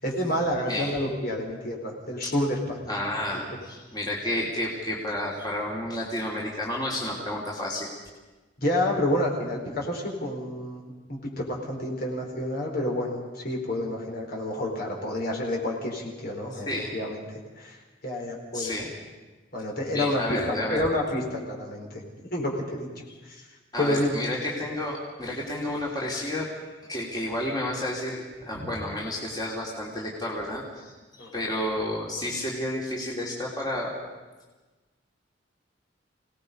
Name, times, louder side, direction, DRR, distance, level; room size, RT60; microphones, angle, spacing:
voice 1, 0.0-2.9 8.6-17.8 18.0-18.7 19.5-22.0 22.3-22.9 23.3-23.5 23.8-24.2 28.6-28.7 31.2-31.5, left 1 dB, 55° left, -1 dB, 4.8 m, -29 dB
voice 2, 2.9-7.9 16.5-16.9 18.5-18.9 19.9-20.9 23.7-33.9, left 1 dB, 20° left, -4 dB, 3.1 m, -31 dB
27.5 x 18.5 x 5.5 m, 1.2 s
head